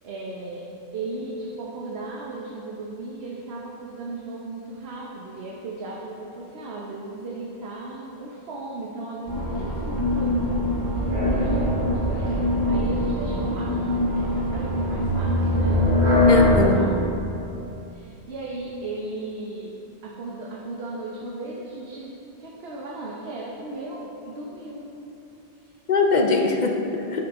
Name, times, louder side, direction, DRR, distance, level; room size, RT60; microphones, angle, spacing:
voice 1, 0.0-0.6 0.9-10.6 10.9-16.9 17.9-19.7 20.0-22.1 22.4-24.9 25.6-25.7 26.3-26.7, right 2 dB, 65° right, -3 dB, 1.1 m, -36 dB
sound 1, 9.3-16.6, left 1 dB, 85° right, 1.9 m, -22 dB
voice 2, 16.3-16.9 25.9-27.2, left 4 dB, 50° left, 3 dB, 0.6 m, -22 dB
9.9 x 6.4 x 3.6 m, 3.0 s
omnidirectional pair, 1.1 m